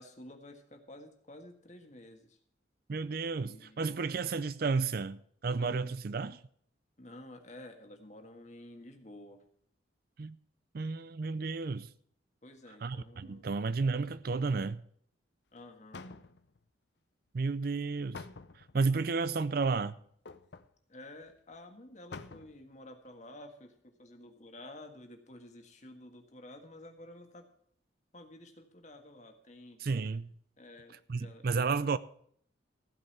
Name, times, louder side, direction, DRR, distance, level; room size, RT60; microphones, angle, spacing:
voice 1, 0.0-2.4 3.3-3.9 7.0-9.4 12.4-13.4 15.5-16.1 18.0-18.1 20.9-27.4 28.1-29.8 30.6-31.4, left 1 dB, 40° left, 1.7 m, -51 dB
voice 2, 2.9-6.4 10.2-10.4 10.7-11.9 12.7-14.8 17.3-18.2 18.5-20.0 29.8-30.3 31.1-32.0, right 4 dB, 50° right, 0.5 m, -32 dB
sound 1, 15.6-15.7 15.9-16.6 18.1-18.8 20.3-20.7 21.2-21.3 21.5-21.6 22.1-22.6 23.1-23.2, left 4 dB, 60° left, 0.7 m, -47 dB
15.5 x 5.5 x 8.4 m
head